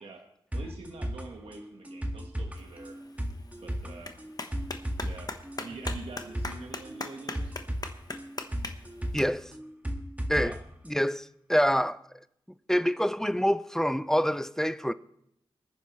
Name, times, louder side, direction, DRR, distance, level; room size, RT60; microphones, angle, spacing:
sound 1, 0.5-10.6 10.9-11.0, equal, 15° right, 1.8 m, -36 dB
voice 1, 0.5-3.0 3.6-4.1 5.0-5.3 5.6-7.5 10.4-10.6, right 3 dB, 80° right, 1.4 m, -45 dB
Clapping, 2.6-9.2, left 3 dB, 40° left, 1.1 m, -42 dB
voice 2, 9.1-9.5 10.3-10.6 10.9-12.0 12.7-14.9, equal, 5° left, 0.5 m, -26 dB
24.0 x 10.0 x 3.2 m
cardioid pair, 65°, 10 cm